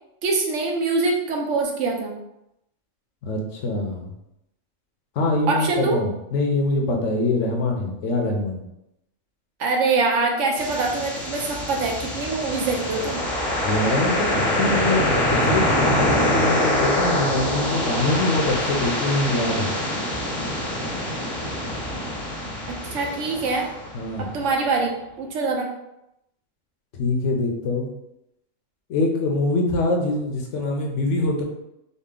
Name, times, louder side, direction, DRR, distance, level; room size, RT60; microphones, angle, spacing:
voice 1, 0.2-2.1 5.5-6.0 9.6-13.2 22.7-23.7 24.2-24.9 25.2-25.7, right 3 dB, 65° right, 1 dB, 1.0 m, -24 dB
voice 2, 3.2-4.0 5.2-8.6 13.6-19.8 23.9-24.3 26.9-27.9 28.9-31.4, left 2 dB, 65° left, 1 dB, 1.0 m, -24 dB
sound 1, 10.6-24.4, left 1 dB, 45° right, 1.3 m, -25 dB
4.0 x 2.1 x 3.7 m, 0.86 s
omnidirectional pair, 1.4 m